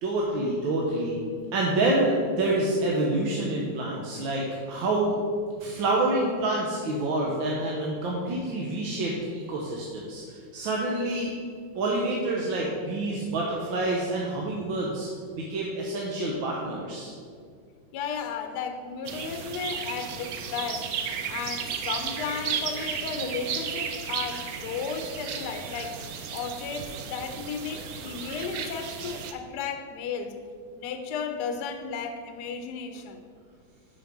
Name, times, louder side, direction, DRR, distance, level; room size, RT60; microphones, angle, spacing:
voice 1, 0.0-1.2 1.5-5.2 5.6-11.3 11.8-15.1 15.4-17.1, right 2 dB, 85° right, -3 dB, 1.7 m, -27 dB
voice 2, 17.9-20.9 21.3-26.0 26.3-30.4 30.7-33.2, left 6 dB, 70° left, 6 dB, 1.1 m, -34 dB
sound 1, 19.0-29.3, right 7 dB, 65° right, 0.9 m, -34 dB
7.2 x 5.3 x 5.9 m, 2.1 s
omnidirectional pair, 2.1 m